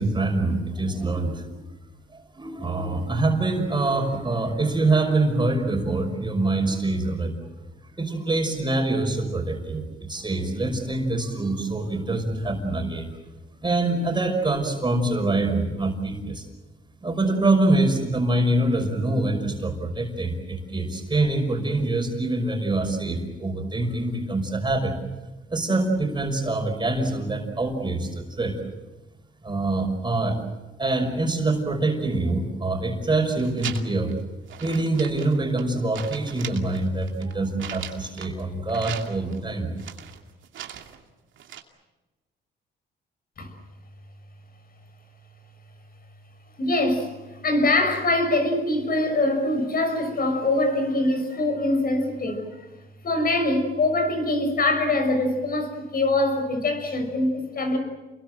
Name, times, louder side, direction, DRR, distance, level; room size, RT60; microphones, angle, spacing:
voice 1, 0.0-1.6 2.1-7.3 8.0-13.1 13.6-16.4 17.0-25.0 25.5-28.6 29.4-30.4 30.8-34.1 34.6-39.7, right 2 dB, 25° right, 4 dB, 5.6 m, -25 dB
sound 1, 33.3-34.1 34.5-35.7 35.9-38.4 38.7-39.4 39.8-41.0 41.4-41.6, right 10 dB, 75° right, 2.6 m, -39 dB
voice 2, 46.6-52.7 53.0-57.8, left 2 dB, 50° left, 6 dB, 6.4 m, -23 dB
29.0 x 22.0 x 7.8 m, 1.1 s
cardioid pair, 90°, 20 cm